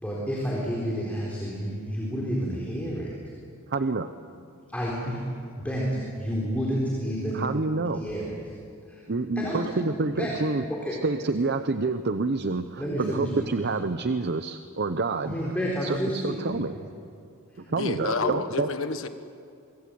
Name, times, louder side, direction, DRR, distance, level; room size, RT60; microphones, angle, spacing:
voice 1, 0.0-3.1 4.7-5.2 5.6-7.4 7.9-8.3 8.9-9.0 9.4-9.7 10.1-10.3 10.8-11.0 12.8-13.3 15.2-16.4 16.7-16.8 18.2-18.3, equal, 5° left, -4 dB, 4.0 m, -30 dB
voice 2, 3.7-4.1 7.3-8.0 9.1-10.6 11.0-15.6 15.8-16.7 17.6-18.7, right 3 dB, 50° right, 10 dB, 0.7 m, -28 dB
voice 3, 17.7-19.1, left 4 dB, 65° left, 9 dB, 1.5 m, -29 dB
24.0 x 24.0 x 7.8 m, 2.4 s
head